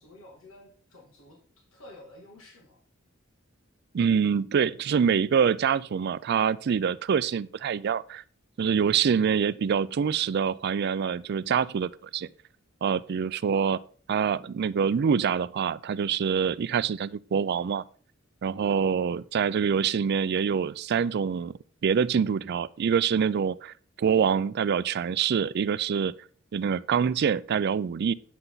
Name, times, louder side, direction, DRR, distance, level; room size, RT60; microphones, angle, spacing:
voice 1, 0.0-2.8, left 1 dB, 90° left, 2.4 m, -51 dB
voice 2, 3.9-8.2 8.6-12.3 12.8-13.8 14.1-17.8 18.4-21.5 21.8-26.1 26.5-28.1, right 7 dB, 50° right, 0.3 m, -25 dB
9.2 x 7.8 x 3.9 m
head